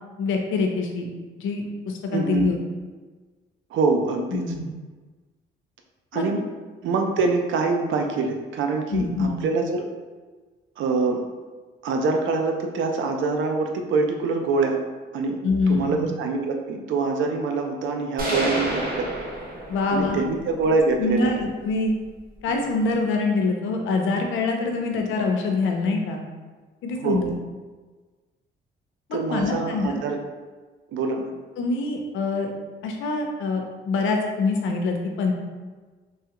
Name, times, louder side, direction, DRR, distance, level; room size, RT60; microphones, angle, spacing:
voice 1, 0.2-1.1 1.4-2.6 4.3-4.7 6.1-6.3 8.9-9.4 15.4-16.0 19.7-20.2 21.0-21.9 22.4-26.2 26.8-27.3 29.1-30.0 31.6-32.5 32.8-35.3, left 3 dB, 80° left, 3 dB, 0.5 m, -25 dB
voice 2, 2.1-2.5 3.7-4.4 6.1-6.4 6.8-9.9 10.8-11.2 11.8-14.8 15.1-15.4 15.7-19.1 19.9-21.5 27.0-27.2 29.1-30.2 30.9-31.3, right 4 dB, 75° right, 4 dB, 0.5 m, -24 dB
sound 1, 18.2-20.1, equal, 50° right, 1.0 m, -28 dB
3.2 x 2.3 x 2.9 m, 1.4 s
cardioid pair, 90°, 20 cm